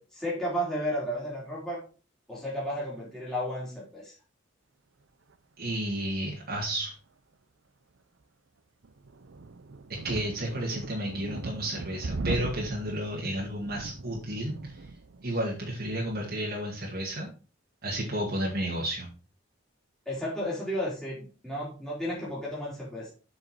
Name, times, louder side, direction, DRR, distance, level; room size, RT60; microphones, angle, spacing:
voice 1, 0.0-1.8 2.3-4.1 20.0-23.1, equal, 5° left, -7 dB, 3.4 m, -33 dB
voice 2, 5.6-6.9 10.0-14.7 15.2-17.3 17.8-19.1, right 1 dB, 55° right, -3 dB, 2.0 m, -32 dB
sound 1, 8.8-16.3, right 3 dB, 75° right, 0.6 m, -39 dB
7.5 x 5.4 x 4.1 m, 0.35 s
head